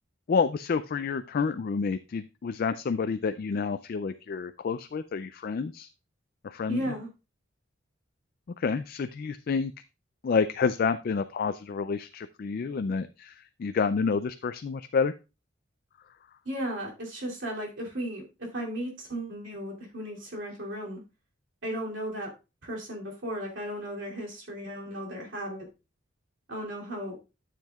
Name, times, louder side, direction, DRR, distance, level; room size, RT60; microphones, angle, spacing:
voice 1, 0.3-5.9 6.4-6.9 8.6-9.7 10.2-15.1, left 5 dB, 45° left, 10 dB, 0.3 m, -29 dB
voice 2, 6.7-7.1 16.4-21.0 21.6-22.3 22.6-25.7 26.5-27.2, right 1 dB, 65° right, -1 dB, 2.7 m, -35 dB
12.0 x 7.5 x 2.3 m, 0.29 s
head